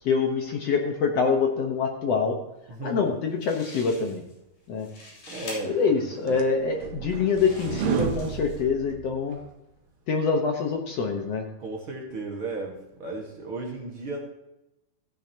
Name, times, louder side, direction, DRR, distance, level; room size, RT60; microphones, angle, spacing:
voice 1, 0.0-2.4 2.8-4.2 4.7-4.9 5.6-9.4 10.1-11.5, left 5 dB, 60° left, 2 dB, 1.9 m, -25 dB
voice 2, 2.7-3.1 5.3-6.4 8.2-8.3 11.6-14.2, right 2 dB, 45° right, 0 dB, 2.1 m, -35 dB
sound 1, 3.1-3.2 3.4-4.4 4.7-5.6 6.3-6.4 7.1-8.6, left 2 dB, 80° left, 4.9 m, -44 dB
sound 2, 5.8-9.5, right 8 dB, 80° right, 2.4 m, -32 dB
15.5 x 9.9 x 2.9 m, 0.92 s
omnidirectional pair, 3.7 m